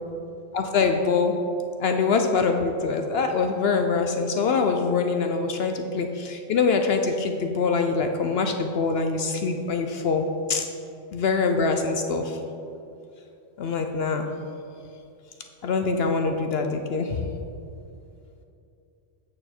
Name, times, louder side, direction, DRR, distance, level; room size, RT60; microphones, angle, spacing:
voice 1, 0.5-1.4 1.8-10.7 11.1-12.4 13.6-14.3 15.6-17.2, left 4 dB, 60° left, 5 dB, 0.7 m, -24 dB
8.5 x 6.8 x 4.3 m, 2.7 s
omnidirectional pair, 1.3 m